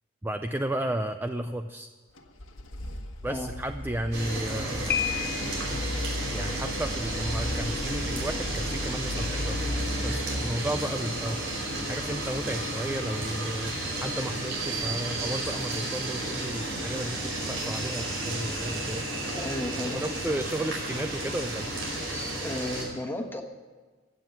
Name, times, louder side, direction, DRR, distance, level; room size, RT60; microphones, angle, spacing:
voice 1, 0.2-1.9 3.2-5.0 6.3-9.7 10.0-13.8 14.0-19.1 19.8-21.7, right 1 dB, 10° right, 7 dB, 0.4 m, -33 dB
sound 1, 2.2-13.0, left 1 dB, 75° left, 1.4 m, -36 dB
sound 2, 4.1-22.8, right 1 dB, 70° right, 5.1 m, -32 dB
Piano, 4.9-5.8, left 9 dB, 55° left, 1.2 m, -30 dB
voice 2, 19.3-20.0 22.4-23.4, left 1 dB, 10° left, 4 dB, 1.4 m, -33 dB
16.5 x 7.4 x 9.5 m, 1.3 s
head